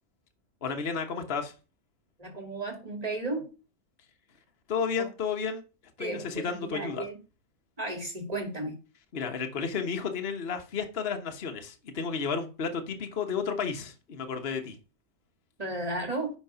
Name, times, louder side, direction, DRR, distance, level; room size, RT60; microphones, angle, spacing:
voice 1, 0.6-1.5 4.7-5.6 6.0-7.1 9.1-14.8, left 5 dB, 45° left, 1.4 m, -32 dB
voice 2, 2.2-3.5 5.0-5.1 6.0-7.2 7.8-8.8 15.6-16.3, right 2 dB, 25° right, 2.6 m, -34 dB
10.5 x 3.9 x 5.7 m
omnidirectional pair, 1.6 m